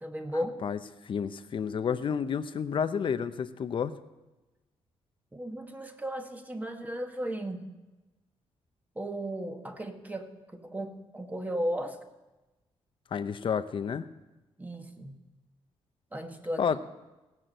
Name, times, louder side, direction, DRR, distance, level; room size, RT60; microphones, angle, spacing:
voice 1, 0.0-0.6 5.3-7.7 8.9-12.0 14.6-15.2 16.1-16.7, equal, 15° right, 4 dB, 1.5 m, -35 dB
voice 2, 1.0-3.9 13.1-14.1 16.6-16.8, left 7 dB, 50° left, 11 dB, 0.8 m, -30 dB
17.5 x 6.0 x 7.8 m, 1.1 s
cardioid pair, 100°, 11 cm